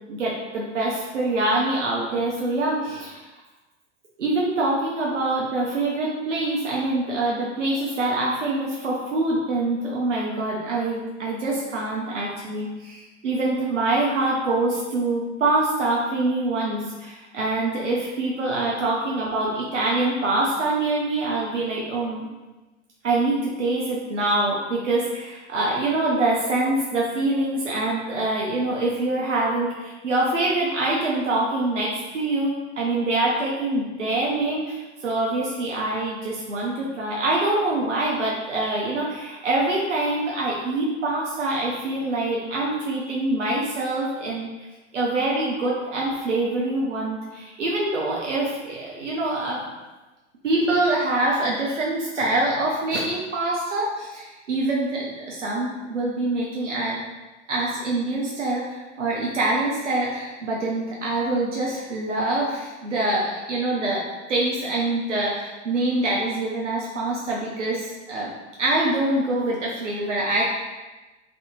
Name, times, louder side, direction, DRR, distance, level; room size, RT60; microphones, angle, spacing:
voice 1, 0.1-3.2 4.2-22.2 23.0-31.9 32.1-44.5 44.9-49.7 50.4-57.0 57.5-64.0 64.3-68.3 68.6-70.4, right 2 dB, 85° right, -4 dB, 0.6 m, -25 dB
3.4 x 2.5 x 2.5 m, 1.2 s
figure-of-eight pair, 85°, 35 cm